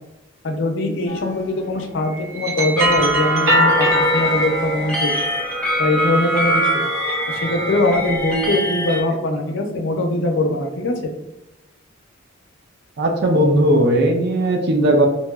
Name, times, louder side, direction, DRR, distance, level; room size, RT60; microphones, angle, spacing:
voice 1, 0.4-3.9 4.1-5.1 5.8-6.7 7.3-11.1, left 2 dB, 70° left, 3 dB, 0.5 m, -22 dB
sound 1, 1.1-1.4 2.1-6.2 6.8-7.9, equal, 85° right, 0.8 m, -23 dB
sound 2, 2.8-9.0, right 1 dB, 5° left, 0.4 m, -23 dB
voice 2, 13.0-15.1, right 1 dB, 55° right, 3 dB, 0.4 m, -17 dB
2.9 x 2.8 x 2.3 m, 0.90 s
head